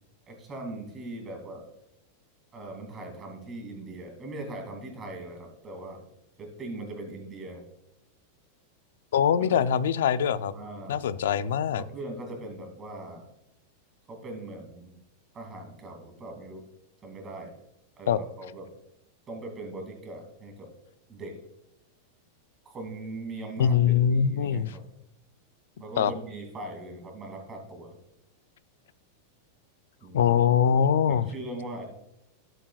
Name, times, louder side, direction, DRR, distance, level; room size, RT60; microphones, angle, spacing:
voice 1, 0.3-1.6 2.5-6.0 6.4-7.6 9.4-9.6 10.5-11.0 11.8-13.3 14.1-15.0 15.3-16.6 17.0-17.5 18.0-18.7 19.3-20.7 21.1-21.3 22.6-24.8 25.8-28.0 30.0-30.3 31.1-31.8, right 2 dB, 20° right, 1 dB, 2.6 m, -40 dB
voice 2, 9.1-10.5 10.9-11.8 18.1-18.2 23.6-24.8 26.0-26.1 30.1-31.3, left 8 dB, 85° left, 15 dB, 0.4 m, -23 dB
12.0 x 7.7 x 2.4 m, 0.88 s
supercardioid pair, 150°, 0 cm